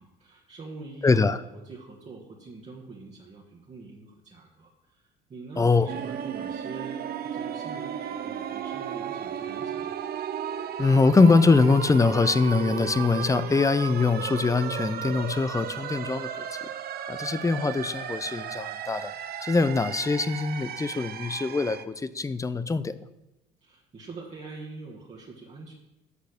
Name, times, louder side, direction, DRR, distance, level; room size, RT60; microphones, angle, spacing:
voice 1, 0.0-9.9 23.6-25.7, right 3 dB, 35° right, -3 dB, 1.5 m, -44 dB
voice 2, 1.0-1.4 5.6-5.9 10.8-16.6 17.1-19.1 19.4-23.0, left 4 dB, 15° left, 14 dB, 0.5 m, -23 dB
sound 1, 5.9-21.9, right 9 dB, 50° right, 0.6 m, -35 dB
8.3 x 4.0 x 6.6 m, 0.92 s
hypercardioid pair, 65°, 21 cm